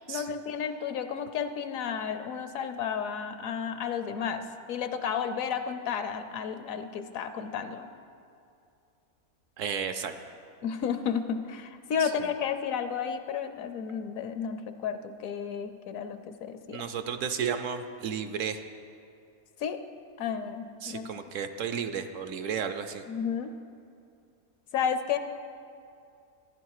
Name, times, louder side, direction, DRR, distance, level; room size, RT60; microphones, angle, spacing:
voice 1, 0.1-7.9 10.6-16.8 19.6-19.8 20.2-21.1 23.1-23.5 24.7-25.2, left 7 dB, 70° left, 10 dB, 1.0 m, -32 dB
voice 2, 9.6-10.1 12.0-12.3 16.7-18.6 20.8-23.0, right 7 dB, 65° right, 9 dB, 0.9 m, -33 dB
14.0 x 10.5 x 4.8 m, 2.5 s
omnidirectional pair, 1.5 m